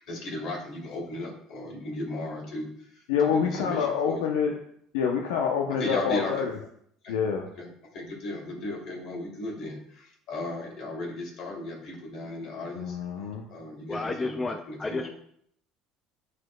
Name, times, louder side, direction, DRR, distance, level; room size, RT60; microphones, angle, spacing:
voice 1, 0.0-4.2 5.8-6.3 7.0-7.1 7.6-7.7 7.9-13.0 13.5-15.1, left 2 dB, 60° left, -1 dB, 2.6 m, -36 dB
voice 2, 3.1-4.6 4.9-6.6 7.1-7.5 12.7-13.5, left 7 dB, 85° left, 1 dB, 0.6 m, -27 dB
voice 3, 13.9-15.1, left 3 dB, 20° left, 7 dB, 0.5 m, -31 dB
12.0 x 4.2 x 2.2 m, 0.67 s
supercardioid pair, 85°, 0 cm